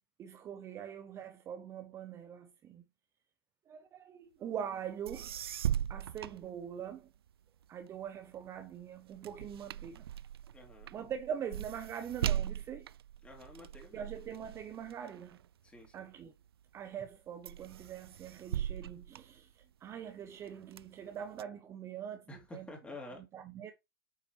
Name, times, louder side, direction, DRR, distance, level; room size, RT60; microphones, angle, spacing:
voice 1, 0.2-2.8 3.7-5.3 5.9-7.1 7.7-10.0 10.9-12.9 13.9-15.4 15.9-16.3 16.7-22.2 22.5-22.7 23.3-23.7, right 8 dB, 20° right, 0.7 m, -43 dB
sound 1, 4.8-4.9 5.1-7.2 7.6-16.3 16.8-17.2 17.5-19.9 20.4-21.4, right 10 dB, 80° right, 0.4 m, -39 dB
voice 2, 10.5-10.9 13.2-14.1 15.6-16.0 22.3-23.2, left 2 dB, 10° left, 2.8 m, -49 dB
8.6 x 5.7 x 3.1 m
hypercardioid pair, 130°, 13 cm